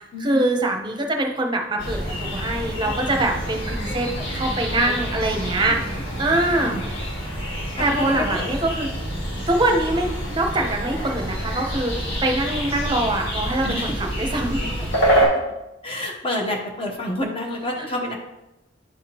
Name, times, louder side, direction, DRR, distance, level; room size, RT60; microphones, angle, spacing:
voice 1, 0.2-4.1 4.3-5.8 6.2-6.8 7.8-8.9 9.5-14.6, right 1 dB, 25° right, 2 dB, 0.7 m, -23 dB
sound 1, 1.8-15.3, right 1 dB, 75° left, 1.8 m, -27 dB
voice 2, 3.9-4.2 4.7-4.9 5.6-5.7 6.5-6.8 7.8-8.4 13.6-14.1 15.2-15.4 15.8-18.1, left 1 dB, 30° left, 1 dB, 1.0 m, -29 dB
10.5 x 3.5 x 2.9 m, 0.95 s
head